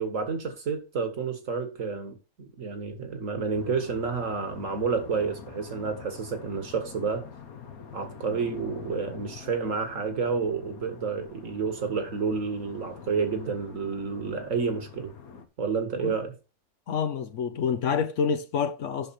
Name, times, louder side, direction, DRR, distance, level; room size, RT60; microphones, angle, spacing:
voice 1, 0.0-7.3 7.9-15.1 15.6-16.3, right 5 dB, 60° right, 1.9 m, -30 dB
sound 1, 3.5-15.5, left 7 dB, 80° left, 1.5 m, -46 dB
voice 2, 16.9-19.1, left 6 dB, 60° left, 1.0 m, -28 dB
8.6 x 6.6 x 4.3 m
omnidirectional pair, 1.5 m